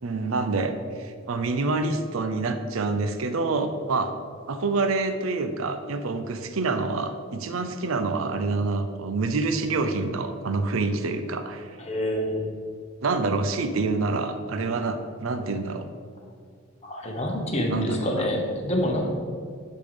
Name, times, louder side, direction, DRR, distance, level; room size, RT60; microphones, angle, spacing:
voice 1, 0.0-4.1 4.5-11.7 13.0-15.9 17.7-18.3, right 3 dB, 70° right, 8 dB, 0.5 m, -27 dB
voice 2, 11.9-12.5 16.8-19.0, left 1 dB, 30° left, 0 dB, 1.1 m, -26 dB
10.5 x 3.8 x 5.0 m, 2.2 s
head